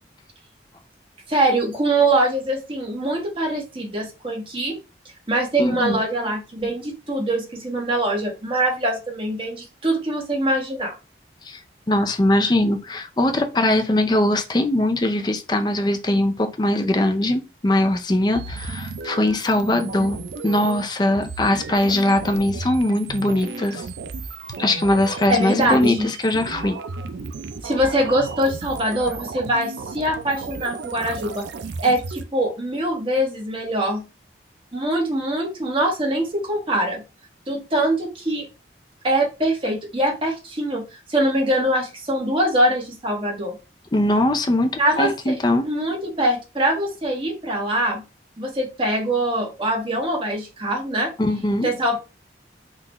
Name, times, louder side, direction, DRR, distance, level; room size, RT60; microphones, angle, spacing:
voice 1, 1.3-4.8 5.3-10.9 25.3-26.1 27.6-31.4 31.8-34.0 34.7-37.0 37.5-38.5 39.0-40.8 41.1-43.6 44.8-45.4 45.6-48.0 48.4-51.1 51.6-52.0, right 1 dB, 30° right, 1.2 m, -23 dB
voice 2, 5.6-6.0 11.4-11.6 11.9-23.8 24.6-26.8 43.9-45.7 51.2-51.7, left 1 dB, 25° left, 0.5 m, -21 dB
sound 1, 18.3-32.2, right 4 dB, 75° right, 0.4 m, -34 dB
3.8 x 2.4 x 3.0 m
head